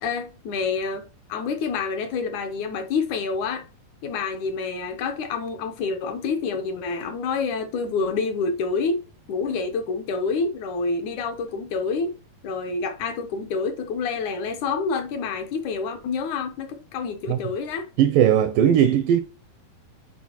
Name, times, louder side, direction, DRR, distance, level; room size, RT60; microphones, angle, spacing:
voice 1, 0.0-3.7 4.0-9.0 9.3-12.1 12.4-17.9, left 4 dB, 70° left, 1.9 m, -27 dB
voice 2, 18.0-19.2, right 10 dB, 85° right, 2.0 m, -18 dB
9.4 x 4.4 x 2.9 m
omnidirectional pair, 4.5 m